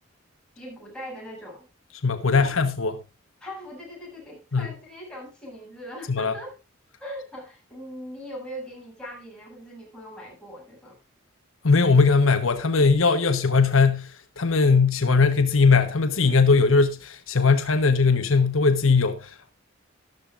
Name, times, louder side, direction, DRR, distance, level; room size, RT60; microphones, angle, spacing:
voice 1, 0.6-1.7 2.3-2.5 3.4-6.5 7.0-11.0, equal, 5° left, 7.8 m, -40 dB
voice 2, 2.0-3.0 4.5-4.7 6.1-6.3 11.6-19.5, left 4 dB, 75° left, 1.2 m, -20 dB
13.5 x 13.0 x 2.5 m
head